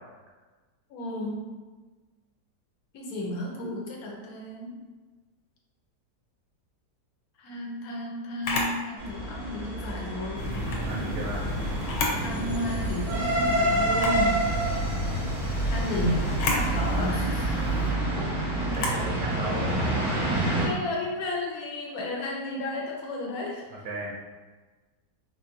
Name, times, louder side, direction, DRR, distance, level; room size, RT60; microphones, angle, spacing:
voice 1, 0.9-1.5 2.9-4.7 7.4-10.7 12.2-14.5 15.7-17.7 18.2-18.3 20.6-23.9, left 1 dB, 65° left, -1 dB, 1.1 m, -33 dB
Camera, 8.4-8.8 10.5-10.8 11.8-12.3 12.7-12.8 13.9-14.2 16.3-16.7 18.7-19.0, left 3 dB, 90° left, 1.3 m, -29 dB
sound 1, 9.0-20.7, right 1 dB, 25° right, 0.7 m, -28 dB
sound 2, 10.4-17.9, equal, 40° left, 1.3 m, -33 dB
voice 2, 10.8-11.4 18.3-19.8 23.7-24.1, right 2 dB, 80° right, -2 dB, 1.3 m, -36 dB
4.1 x 2.5 x 2.6 m, 1.3 s
omnidirectional pair, 1.8 m